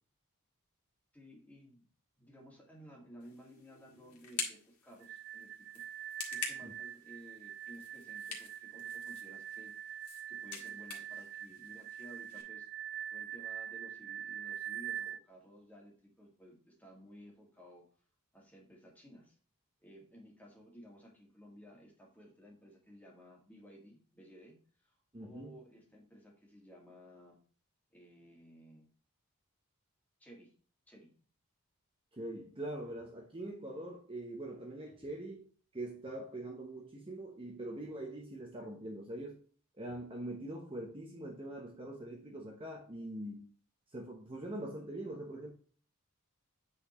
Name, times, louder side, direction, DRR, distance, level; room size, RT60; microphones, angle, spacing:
voice 1, 1.1-1.9 2.2-5.9 6.3-12.7 13.1-17.8 18.3-19.4 19.8-27.4 27.9-28.9 30.2-30.5 30.9-31.1, equal, 5° left, 2.1 m, -56 dB
sound 1, 3.2-12.4, left 6 dB, 80° left, 1.8 m, -47 dB
sound 2, 5.0-15.2, right 10 dB, 45° right, 0.3 m, -44 dB
voice 2, 25.1-25.5 32.1-39.4 39.8-43.5 43.9-45.5, right 1 dB, 25° right, 0.9 m, -43 dB
8.6 x 4.3 x 3.1 m
head